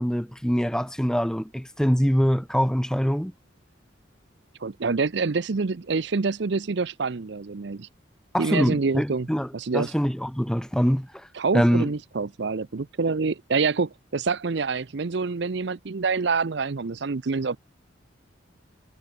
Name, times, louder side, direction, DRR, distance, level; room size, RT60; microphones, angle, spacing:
voice 1, 0.0-3.3 8.3-11.3 11.5-11.9, equal, 5° left, 2.4 m, -24 dB
voice 2, 4.6-7.9 8.4-9.3 9.5-9.9 11.4-17.6, right 4 dB, 60° right, 0.6 m, -26 dB
head